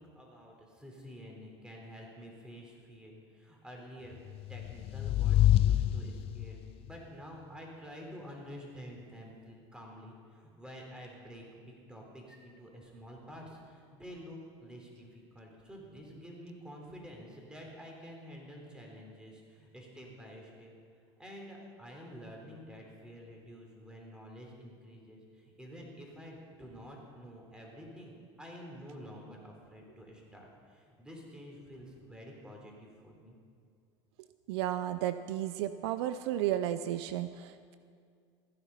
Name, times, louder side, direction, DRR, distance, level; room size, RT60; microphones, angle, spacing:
voice 1, 0.0-4.2 4.5-20.7 21.2-28.1 28.4-33.4, equal, 5° right, -1 dB, 3.6 m, -49 dB
sound 1, 4.3-6.7, left 12 dB, 40° left, 0.4 m, -27 dB
voice 2, 34.5-37.8, right 12 dB, 70° right, 12 dB, 0.5 m, -33 dB
15.0 x 10.0 x 5.5 m, 2.2 s
hypercardioid pair, 90°, 14 cm